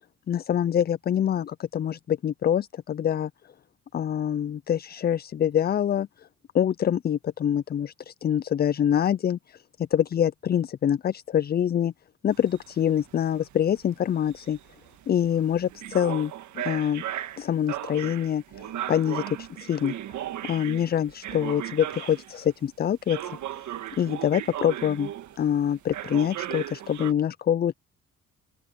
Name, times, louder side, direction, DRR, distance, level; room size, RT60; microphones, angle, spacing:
voice 1, 0.3-3.3 3.9-6.3 6.5-11.9 12.2-14.6 15.1-17.0 17.4-19.9 20.4-23.6 24.0-25.1 25.4-27.7, left 9 dB, 35° left, 0.4 m, -25 dB
sound 1, 12.3-22.5 23.1-25.5 25.9-27.1, right 12 dB, 75° right, 1.6 m, -36 dB
open air
cardioid pair, 90°, 30 cm